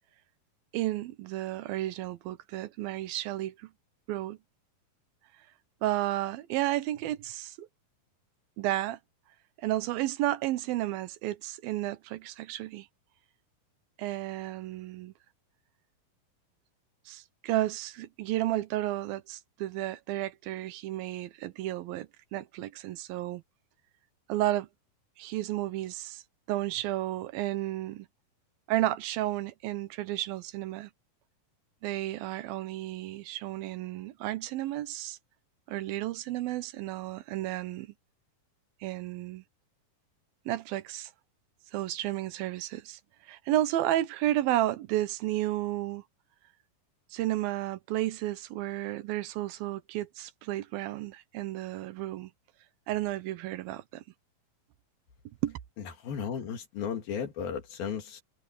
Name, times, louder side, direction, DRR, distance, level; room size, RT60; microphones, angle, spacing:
voice 1, 0.7-3.7 4.1-4.4 5.8-7.7 8.6-9.0 9.6-12.9 14.0-15.1 17.1-23.4 24.3-24.7 25.2-26.2 26.5-28.1 28.7-30.9 31.8-35.2 35.7-37.9 38.8-39.4 40.5-41.1 41.7-46.0 47.1-52.3 52.9-54.0 55.4-55.6, right 14 dB, 85° right, 2.7 m, -32 dB
voice 2, 56.0-58.2, left 7 dB, 80° left, 4.4 m, -34 dB
omnidirectional pair, 4.1 m